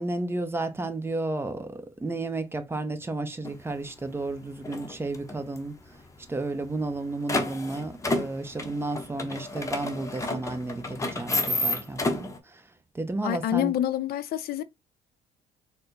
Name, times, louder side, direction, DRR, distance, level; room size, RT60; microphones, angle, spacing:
voice 1, 0.0-5.7 6.3-12.7 12.9-13.8, right 2 dB, 15° right, 0.7 m, -32 dB
sound 1, 3.4-3.6 4.0-4.3 4.6-5.6 5.9-6.0 6.2-6.3 6.7-12.4, left 2 dB, 20° left, 0.8 m, -30 dB
voice 2, 13.2-14.6, left 12 dB, 65° left, 0.6 m, -27 dB
4.3 x 2.1 x 3.9 m
cardioid pair, 110°, 17 cm